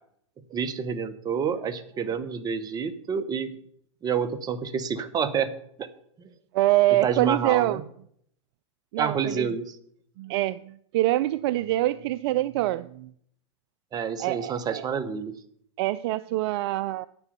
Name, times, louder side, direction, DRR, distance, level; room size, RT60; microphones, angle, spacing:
voice 1, 0.5-3.5 4.0-5.5 5.8-5.9 6.9-7.8 9.0-9.8 13.9-15.3, right 6 dB, 25° right, 1.0 m, -28 dB
voice 2, 6.5-7.8 8.9-9.5 10.2-13.1 14.2-14.8 15.8-17.1, right 16 dB, 55° right, 0.4 m, -25 dB
9.1 x 6.9 x 6.7 m
hypercardioid pair, 115°, 16 cm